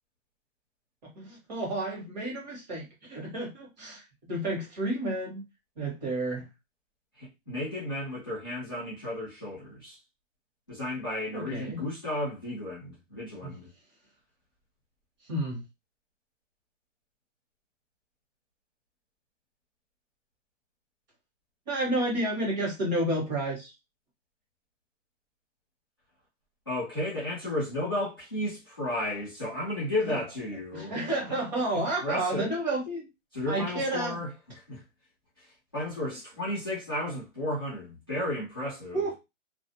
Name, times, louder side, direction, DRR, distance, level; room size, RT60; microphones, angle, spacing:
voice 1, 1.1-4.0 4.3-5.4 5.8-6.5 11.3-11.8 13.4-13.5 15.3-15.6 21.7-23.7 30.1-30.2 30.7-33.1 33.5-34.2 38.9-39.1, right 1 dB, 35° right, 1.1 m, -31 dB
voice 2, 7.2-10.0 10.7-13.7 26.7-30.9 31.3-31.4 31.7-32.5 33.3-34.8 35.4-39.1, left 1 dB, 20° left, 0.4 m, -33 dB
2.4 x 2.0 x 2.6 m
hypercardioid pair, 170°, 39 cm